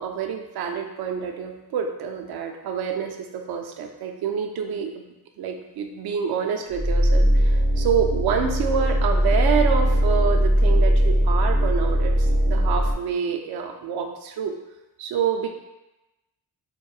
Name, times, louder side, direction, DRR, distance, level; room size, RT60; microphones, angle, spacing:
voice 1, 0.0-5.0 5.4-14.5 15.0-15.5, right 7 dB, 70° right, 5 dB, 0.5 m, -27 dB
sound 1, 6.7-12.9, equal, 20° right, 0.4 m, -20 dB
3.0 x 2.6 x 2.3 m, 0.98 s
cardioid pair, 115°, 39 cm